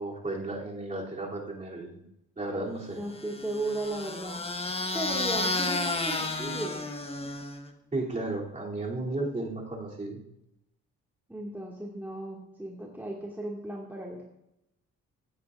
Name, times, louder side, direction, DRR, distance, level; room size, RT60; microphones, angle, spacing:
voice 1, 0.0-2.0 2.4-3.0 7.9-10.2, right 2 dB, 25° right, -3 dB, 3.0 m, -34 dB
voice 2, 2.9-4.4 4.9-6.8 11.3-14.2, right 2 dB, 5° right, -3 dB, 2.0 m, -36 dB
sound 1, 3.2-7.7, left 2 dB, 20° left, 1.3 m, -32 dB
16.5 x 9.4 x 2.5 m, 0.82 s
cardioid pair, 90°, 30 cm